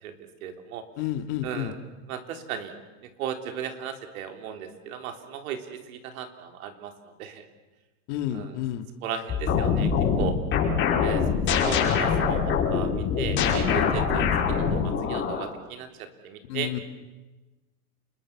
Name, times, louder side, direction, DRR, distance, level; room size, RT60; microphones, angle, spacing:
voice 1, 0.0-0.8 1.4-1.8 2.1-2.8 3.0-7.5 8.3-8.6 9.0-9.9 10.2-10.4 11.0-11.3 11.7-16.7, right 8 dB, 70° right, 6 dB, 3.9 m, -36 dB
voice 2, 1.0-1.7 8.1-8.8 16.5-16.8, left 12 dB, 50° left, 7 dB, 2.4 m, -30 dB
sound 1, 9.3-15.5, left 6 dB, 25° left, 5.8 m, -24 dB
30.0 x 22.0 x 7.4 m, 1.1 s
supercardioid pair, 150°, 44 cm